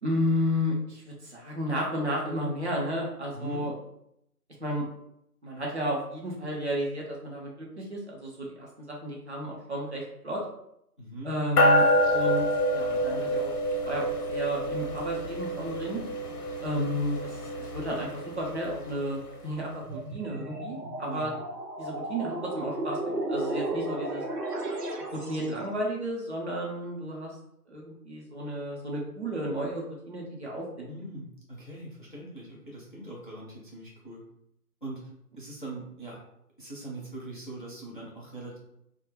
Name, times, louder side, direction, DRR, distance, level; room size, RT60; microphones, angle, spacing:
voice 1, 0.0-3.7 4.6-4.9 5.4-10.4 11.2-12.4 12.7-13.5 13.8-16.0 16.6-17.2 17.6-21.3 21.8-24.2 25.1-27.3 27.7-30.9, equal, 45° right, -3 dB, 0.7 m, -32 dB
voice 2, 3.3-3.7 11.0-11.3 16.7-16.9 21.1-21.3 30.9-34.2 34.8-35.1 35.4-36.2 36.6-38.6, right 2 dB, 35° left, -4 dB, 0.5 m, -41 dB
sound 1, 11.6-19.3, equal, 70° left, 0.7 m, -27 dB
sound 2, 19.8-25.6, right 1 dB, 85° right, 0.8 m, -34 dB
2.3 x 2.1 x 3.2 m, 0.77 s
figure-of-eight pair, 155°, 47 cm